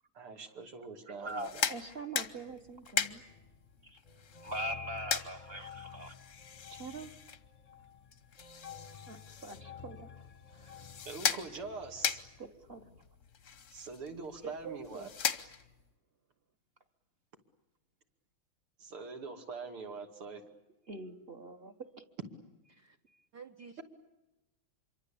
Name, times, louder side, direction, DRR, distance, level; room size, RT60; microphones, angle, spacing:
voice 1, 0.1-1.6 11.0-12.2 13.7-15.1 18.8-20.4, right 4 dB, 80° right, 4 dB, 3.3 m, -43 dB
voice 2, 1.1-3.2 3.8-4.0 4.4-6.1 6.7-7.1 9.1-10.1 10.5-10.9 12.4-13.0 20.9-21.7, right 1 dB, 35° right, 7 dB, 1.3 m, -43 dB
sound 1, 1.2-15.9, left 7 dB, 45° left, 1.1 m, -39 dB
sound 2, 3.0-12.5, left 8 dB, 25° left, 0.9 m, -52 dB
voice 3, 14.4-15.1 22.7-23.0 23.3-23.8, right 6 dB, 55° right, 3 dB, 1.5 m, -47 dB
26.5 x 24.0 x 8.6 m, 0.98 s
omnidirectional pair, 2.4 m